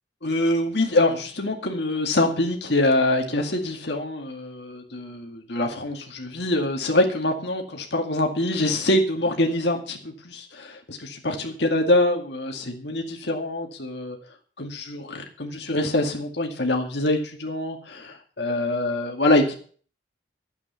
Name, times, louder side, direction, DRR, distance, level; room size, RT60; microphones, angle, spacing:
voice 1, 0.2-14.2 14.6-19.6, left 1 dB, 65° left, 2 dB, 2.1 m, -24 dB
12.5 x 8.4 x 6.9 m, 0.43 s
head